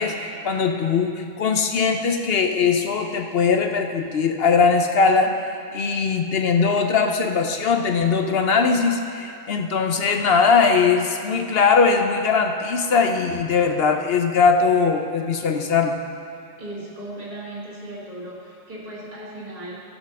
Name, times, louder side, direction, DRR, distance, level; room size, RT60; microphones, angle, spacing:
voice 1, 0.0-5.3 5.7-16.0, left 5 dB, 55° left, 4 dB, 0.9 m, -20 dB
voice 2, 16.6-19.8, right 1 dB, 30° right, -7 dB, 2.2 m, -36 dB
15.0 x 5.3 x 6.1 m, 2.5 s
omnidirectional pair, 1.3 m